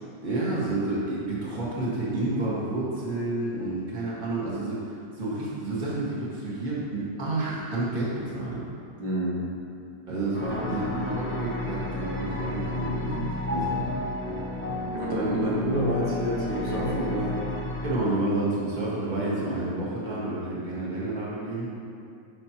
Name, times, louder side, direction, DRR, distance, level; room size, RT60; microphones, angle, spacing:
voice 1, 0.2-8.6 10.1-13.9 17.8-21.7, right 2 dB, 25° right, -7 dB, 1.7 m, -30 dB
voice 2, 9.0-9.5 14.9-17.4, equal, 70° right, -5 dB, 1.8 m, -27 dB
sound 1, 10.3-18.0, left 2 dB, 15° left, 0.4 m, -32 dB
11.5 x 5.5 x 2.9 m, 2.5 s
omnidirectional pair, 1.9 m